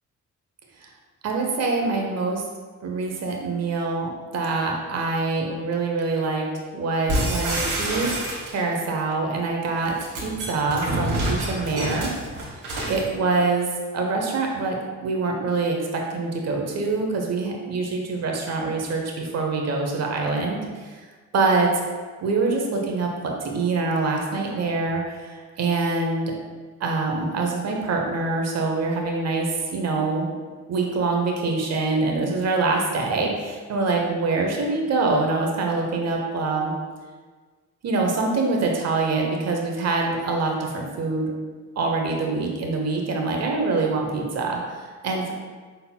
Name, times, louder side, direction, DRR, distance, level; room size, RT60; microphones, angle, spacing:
voice 1, 1.2-2.4 2.8-6.5 6.7-8.1 8.5-12.1 12.9-13.7 13.9-21.0 21.3-21.8 22.2-26.3 26.8-30.3 30.7-36.7 37.8-41.3 41.8-45.3, right 3 dB, 60° right, 1 dB, 0.9 m, -25 dB
sound 1, 7.1-8.8 9.8-13.1, right 1 dB, 85° right, 1.4 m, -27 dB
5.6 x 3.8 x 2.2 m, 1.4 s
cardioid pair, 90°, 30 cm